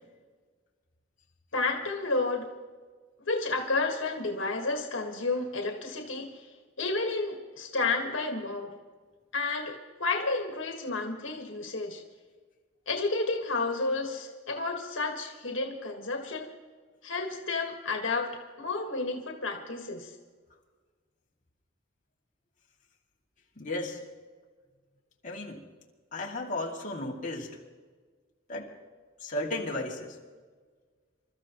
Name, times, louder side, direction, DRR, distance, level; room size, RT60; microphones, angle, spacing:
voice 1, 1.5-2.5 3.2-8.7 9.3-12.0 12.9-16.5 17.0-20.1, left 3 dB, 80° left, 3 dB, 1.8 m, -31 dB
voice 2, 23.6-24.0 25.2-25.6 26.1-27.5 28.5-28.7 29.2-30.2, left 1 dB, 40° left, -3 dB, 2.6 m, -34 dB
28.0 x 13.5 x 3.1 m, 1.5 s
head